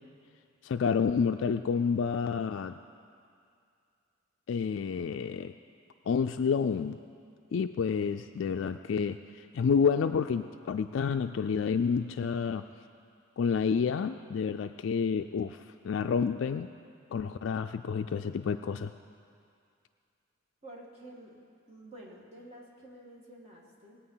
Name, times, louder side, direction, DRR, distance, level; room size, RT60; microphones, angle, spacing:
voice 1, 0.6-2.8 4.5-5.5 6.1-7.0 7.5-12.6 13.4-16.7 17.1-18.9, left 6 dB, 60° left, 8 dB, 0.3 m, -29 dB
voice 2, 20.6-21.3 21.7-24.0, right 1 dB, 30° right, -4 dB, 2.2 m, -50 dB
20.0 x 8.6 x 5.7 m, 2.4 s
head